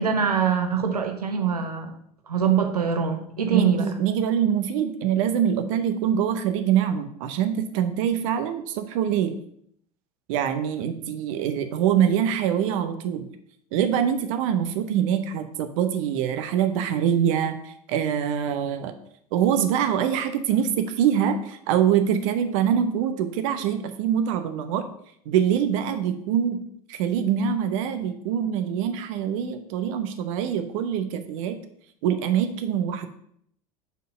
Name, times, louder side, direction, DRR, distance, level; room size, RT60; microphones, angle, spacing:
voice 1, 0.0-1.9 2.3-3.9, right 7 dB, 80° right, 5 dB, 0.9 m, -23 dB
voice 2, 3.5-9.4 10.3-13.3 13.7-18.9 19.3-24.9 25.3-26.6 26.9-31.6 32.0-33.1, right 9 dB, 55° right, 9 dB, 0.8 m, -24 dB
5.1 x 4.5 x 5.5 m, 0.67 s
figure-of-eight pair, 75°, 20 cm